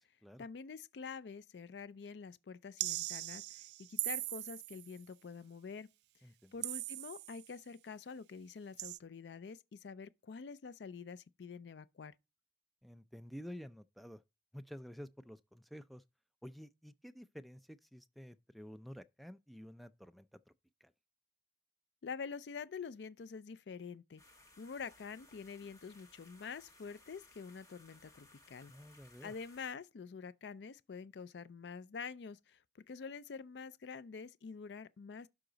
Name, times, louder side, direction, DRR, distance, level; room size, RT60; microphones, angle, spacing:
voice 1, 0.4-5.9 6.5-12.2 22.0-24.2 24.6-28.7 29.2-35.3, left 5 dB, 80° left, 0.4 m, -47 dB
sound 1, 2.8-4.9 6.6-7.5 8.8-9.0, right 18 dB, 75° right, 0.4 m, -40 dB
voice 2, 6.2-6.5 12.8-14.2 14.5-16.0 16.4-20.4 20.8-20.9 28.7-29.3, equal, ahead, 0.4 m, -51 dB
sound 2, 24.2-29.7, left 2 dB, 20° left, 1.4 m, -63 dB
11.5 x 5.0 x 3.9 m
head